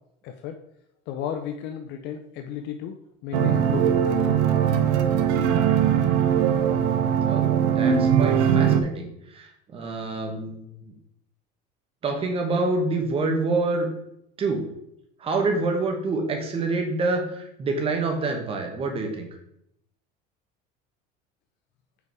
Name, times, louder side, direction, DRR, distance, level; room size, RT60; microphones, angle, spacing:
voice 1, 0.2-0.6 1.1-4.4, left 8 dB, 60° left, 6 dB, 0.6 m, -34 dB
sound 1, 3.3-8.8, right 8 dB, 75° right, 0.8 m, -20 dB
voice 2, 7.3-10.9 12.0-13.9 14.4-14.6 15.2-19.3, right 3 dB, 25° right, 3 dB, 1.2 m, -27 dB
5.1 x 4.8 x 4.7 m, 0.78 s
cardioid pair, 140°, 21 cm